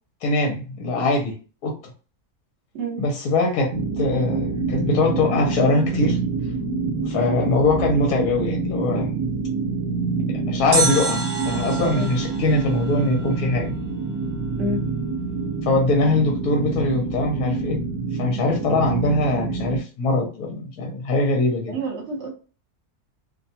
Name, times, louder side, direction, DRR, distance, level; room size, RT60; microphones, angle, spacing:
voice 1, 0.2-1.3 1.6-1.8 3.0-6.2 7.1-9.1 10.3-13.7 15.7-17.8 18.2-21.8, left 2 dB, 75° left, 2 dB, 1.1 m, -22 dB
voice 2, 2.7-3.1 7.0-7.1 12.0-12.1 14.6-14.8 21.7-22.3, right 1 dB, 50° right, -1 dB, 1.2 m, -28 dB
sound 1, 3.7-19.8, right 4 dB, 75° right, 1.0 m, -27 dB
sound 2, 10.7-13.8 14.1-14.2, right 3 dB, 35° right, 0.9 m, -28 dB
2.7 x 2.2 x 2.7 m, 0.36 s
omnidirectional pair, 1.6 m